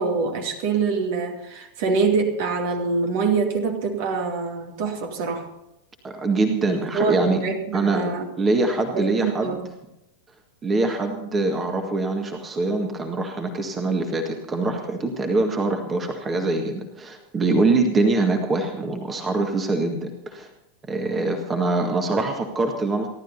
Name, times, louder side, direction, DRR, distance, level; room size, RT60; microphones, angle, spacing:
voice 1, 0.0-5.5 6.7-8.3 8.9-9.7, right 4 dB, 50° right, 4 dB, 2.4 m, -25 dB
voice 2, 6.0-7.5 7.7-9.6 10.6-20.5 20.9-23.1, right 2 dB, 20° right, 4 dB, 1.8 m, -24 dB
29.0 x 12.0 x 2.8 m, 0.88 s
figure-of-eight pair, 90°, 0 cm